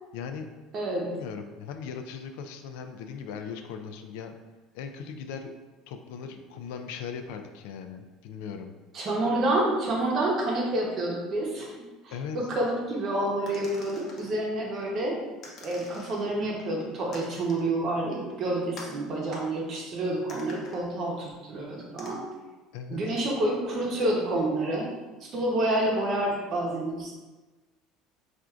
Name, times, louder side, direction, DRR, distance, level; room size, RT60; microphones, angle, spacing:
voice 1, 0.1-0.5 1.1-4.4 4.7-5.5 5.9-8.8 12.1-12.4 22.7-23.2, left 6 dB, 90° left, 6 dB, 0.3 m, -38 dB
voice 2, 0.7-1.1 8.9-11.7 12.0-15.2 15.6-22.2 22.9-24.9 25.3-27.1, right 1 dB, 40° right, -2 dB, 0.8 m, -28 dB
sound 1, 13.5-14.3 15.4-16.3 17.1-17.7 18.8-19.0 20.3-20.8 22.0-22.1, left 3 dB, 40° left, 0.6 m, -46 dB
4.3 x 2.5 x 2.4 m, 1.2 s
cardioid pair, 150°, 0 cm